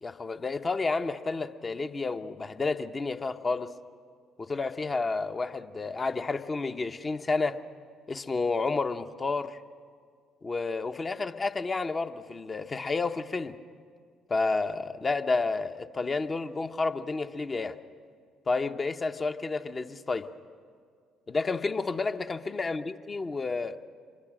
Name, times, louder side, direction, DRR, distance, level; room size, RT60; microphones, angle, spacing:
voice 1, 0.0-3.7 4.4-7.6 8.1-9.6 10.4-13.6 14.3-17.8 18.5-20.3 21.3-23.8, left 3 dB, 30° left, 9 dB, 1.0 m, -30 dB
26.5 x 22.5 x 6.2 m, 2.1 s
hypercardioid pair, 50°, 0 cm